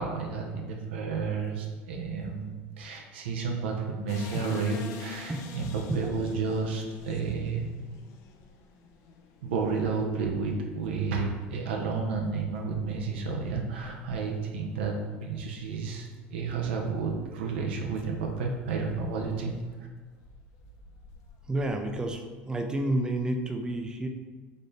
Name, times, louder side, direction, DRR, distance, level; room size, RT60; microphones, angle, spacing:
voice 1, 0.0-7.8 9.4-19.6, right 4 dB, 90° right, 1 dB, 0.6 m, -31 dB
sound 1, 4.1-14.9 15.2-15.3 15.9-16.1 16.3-17.0 17.5-22.2, left 3 dB, 60° left, 0.4 m, -48 dB
voice 2, 21.5-24.1, right 1 dB, 15° right, 4 dB, 0.4 m, -30 dB
4.1 x 2.6 x 3.2 m, 1.4 s
supercardioid pair, 95°, 6 cm